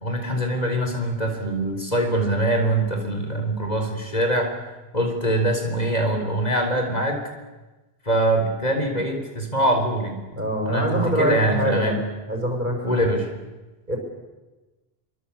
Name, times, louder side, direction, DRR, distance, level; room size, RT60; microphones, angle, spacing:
voice 1, 0.0-4.5 4.9-7.2 8.1-10.2 10.7-12.0 12.8-13.3, right 1 dB, 40° left, 4 dB, 4.0 m, -23 dB
voice 2, 10.3-11.9 12.3-13.1 13.9-14.0, equal, 50° right, 1 dB, 6.6 m, -24 dB
25.0 x 25.0 x 8.4 m, 1.2 s
omnidirectional pair, 1.0 m